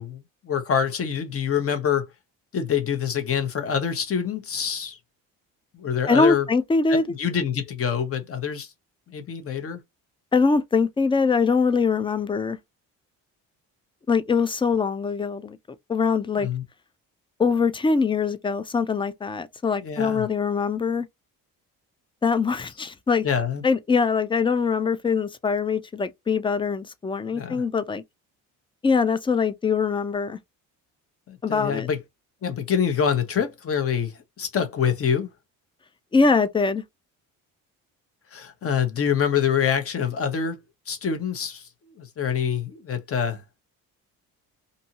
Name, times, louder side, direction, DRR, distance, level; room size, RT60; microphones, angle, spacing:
voice 1, 0.0-2.1 2.5-5.0 5.7-6.5 6.9-8.7 9.1-9.8 16.4-16.6 19.8-20.3 23.2-23.6 27.3-27.6 31.3-32.0 32.4-35.3 38.3-40.6 40.9-43.4, left 7 dB, 40° left, 0.9 m, -26 dB
voice 2, 6.1-7.0 10.3-12.6 14.1-15.6 15.9-16.5 17.4-21.1 22.2-23.2 23.6-28.0 28.8-30.4 31.4-31.9 36.1-36.8, left 5 dB, 15° left, 0.3 m, -23 dB
2.7 x 2.6 x 2.8 m
cardioid pair, 100°, 35 cm